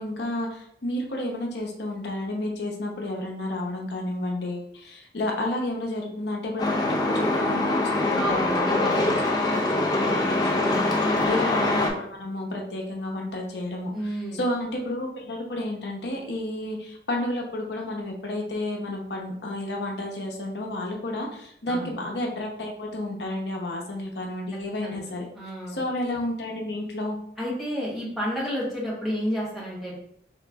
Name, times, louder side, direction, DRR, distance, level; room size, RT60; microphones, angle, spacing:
voice 1, 0.0-13.9 14.3-25.3 25.7-27.2, left 1 dB, 70° left, 0 dB, 0.8 m, -31 dB
Truck, 6.6-11.9, left 2 dB, 20° left, 0.6 m, -24 dB
voice 2, 8.2-9.0 11.0-11.3 13.9-14.4 21.7-21.9 24.8-25.0 25.3-25.8 27.4-29.9, equal, ahead, -6 dB, 1.0 m, -31 dB
3.6 x 3.0 x 3.5 m, 0.69 s
head